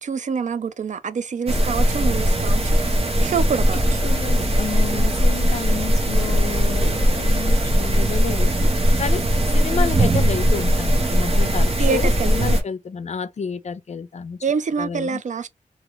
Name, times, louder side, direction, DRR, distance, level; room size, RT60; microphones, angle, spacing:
voice 1, 0.0-4.0 11.8-12.3 14.4-15.5, right 5 dB, 60° right, 0.4 m, -26 dB
sound 1, 1.5-12.6, equal, 45° right, 1.0 m, -19 dB
voice 2, 4.0-9.2 9.5-14.4 14.8-15.2, left 6 dB, 50° left, 0.5 m, -30 dB
2.8 x 2.4 x 3.1 m
cardioid pair, 55°, 14 cm